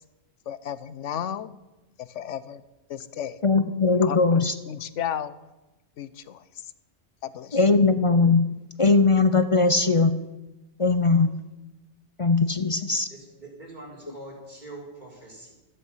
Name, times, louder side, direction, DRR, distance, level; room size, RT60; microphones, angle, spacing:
voice 1, 0.5-1.5 2.0-2.6 2.9-3.4 4.0-5.3 6.0-6.4 7.2-7.6, left 9 dB, 85° left, 15 dB, 1.1 m, -33 dB
voice 2, 3.4-4.5 7.5-10.2 10.8-11.4 12.2-13.1, left 3 dB, 35° left, 11 dB, 0.6 m, -20 dB
voice 3, 13.1-15.5, right 2 dB, 40° right, -3 dB, 4.8 m, -43 dB
14.0 x 13.5 x 5.6 m, 1.0 s
omnidirectional pair, 1.2 m